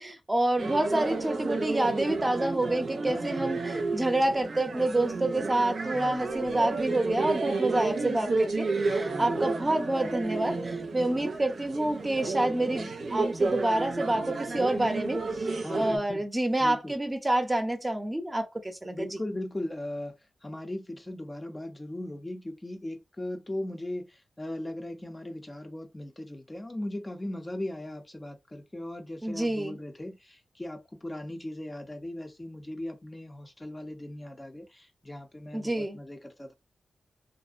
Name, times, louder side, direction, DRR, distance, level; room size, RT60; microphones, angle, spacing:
voice 1, 0.0-15.2 15.7-19.2 29.2-29.8 35.5-36.0, right 1 dB, 20° right, 0.6 m, -28 dB
sound 1, 0.6-16.0, right 3 dB, 70° right, 0.5 m, -31 dB
voice 2, 3.1-3.7 5.9-6.3 9.1-9.4 15.6-16.2 16.6-17.0 18.8-20.2 20.4-36.5, left 1 dB, 25° left, 0.5 m, -38 dB
2.5 x 2.1 x 2.4 m
cardioid pair, 55°, 0 cm